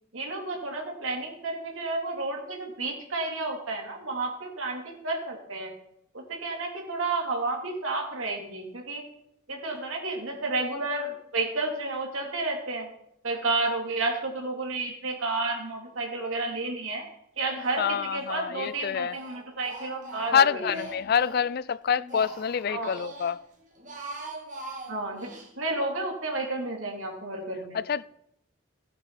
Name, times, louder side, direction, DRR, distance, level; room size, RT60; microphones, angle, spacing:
voice 1, 0.1-5.7 6.1-9.0 9.5-12.9 13.2-17.1 17.4-20.7 22.7-23.0 24.9-25.3 25.6-27.8, right 3 dB, 85° right, 3.1 m, -31 dB
Speech, 17.6-18.3 18.6-21.5 21.8-23.3 23.7-25.5, right 2 dB, 40° right, 2.4 m, -42 dB
voice 2, 17.8-19.2 20.3-23.4 27.7-28.0, left 7 dB, 50° left, 0.3 m, -26 dB
16.0 x 9.6 x 4.2 m
head